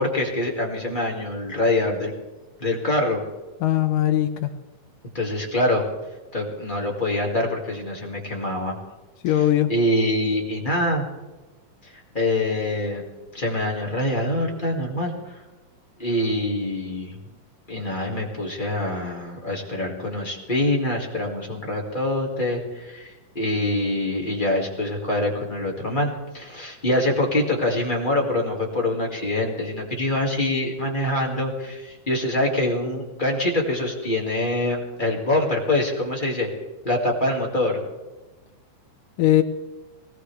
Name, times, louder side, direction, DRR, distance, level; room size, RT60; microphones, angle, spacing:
voice 1, 0.0-2.1 2.6-3.2 5.1-5.8 6.3-8.7 9.7-11.0 11.8-13.0 13.3-15.4 16.0-17.1 17.7-36.5 36.8-37.8, left 1 dB, 20° left, -2 dB, 1.6 m, -25 dB
voice 2, 3.6-4.5 9.2-9.7 39.2-39.4, left 13 dB, 80° left, 9 dB, 2.3 m, -19 dB
20.0 x 18.0 x 3.4 m, 1.1 s
omnidirectional pair, 4.0 m